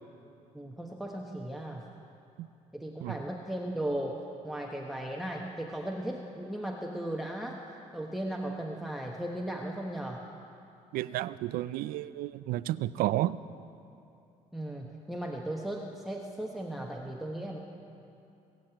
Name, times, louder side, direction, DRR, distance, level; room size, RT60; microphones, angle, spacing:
voice 1, 0.5-1.9 2.7-7.6 7.9-10.3 14.5-17.6, right 1 dB, ahead, 0 dB, 1.0 m, -36 dB
voice 2, 10.9-13.4, right 15 dB, 85° right, 16 dB, 0.4 m, -31 dB
21.5 x 7.7 x 8.9 m, 2.7 s
cardioid pair, 105°, 15 cm